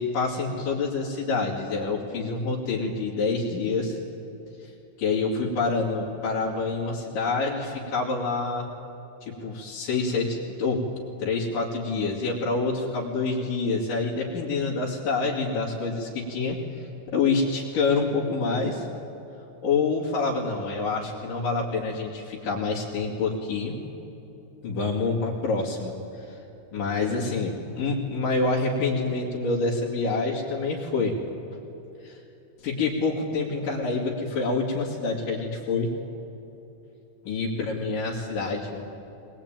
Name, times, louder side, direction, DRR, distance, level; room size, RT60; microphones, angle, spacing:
voice 1, 0.0-4.0 4.6-4.7 5.0-8.7 9.2-10.9 11.2-16.9 17.1-18.9 19.6-23.7 24.6-26.4 26.7-31.2 32.0-32.2 32.6-35.9 37.3-38.8, left 3 dB, 75° left, -4 dB, 4.0 m, -27 dB
22.0 x 21.0 x 9.0 m, 3.0 s
omnidirectional pair, 3.8 m